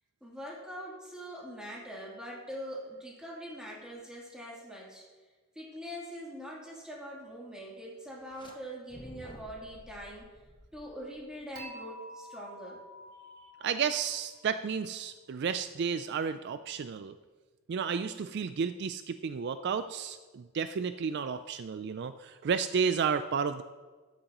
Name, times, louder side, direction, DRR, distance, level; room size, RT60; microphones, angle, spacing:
voice 1, 0.2-5.0 5.5-10.3 10.7-12.8, equal, 5° right, -5 dB, 3.0 m, -43 dB
sound 1, 8.1-8.6 8.9-11.5, left 1 dB, 20° left, 1.1 m, -52 dB
Dishes pots and pans / Chink clink, 11.6-14.7, right 1 dB, 70° right, 2.2 m, -49 dB
voice 2, 13.6-17.2 17.7-23.6, right 6 dB, 55° right, 11 dB, 0.3 m, -32 dB
13.0 x 10.0 x 3.0 m, 1.4 s
head